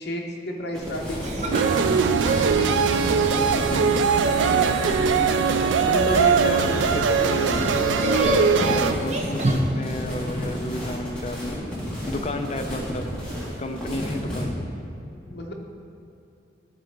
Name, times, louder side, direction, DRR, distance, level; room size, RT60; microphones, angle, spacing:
voice 1, 0.0-2.8 3.4-4.9 15.3-15.5, equal, 60° left, 0 dB, 1.0 m, -34 dB
sound 1, 0.7-14.4, equal, 5° left, 1.9 m, -32 dB
sound 2, 1.2-9.5, right 1 dB, 40° right, 0.7 m, -30 dB
sound 3, 1.5-8.9, right 6 dB, 90° right, 0.4 m, -21 dB
voice 2, 3.4-3.8 4.9-5.3 5.9-11.6 12.1-13.1 13.6-14.6, left 1 dB, 35° left, 5 dB, 0.6 m, -31 dB
12.0 x 4.2 x 5.2 m, 2.7 s
head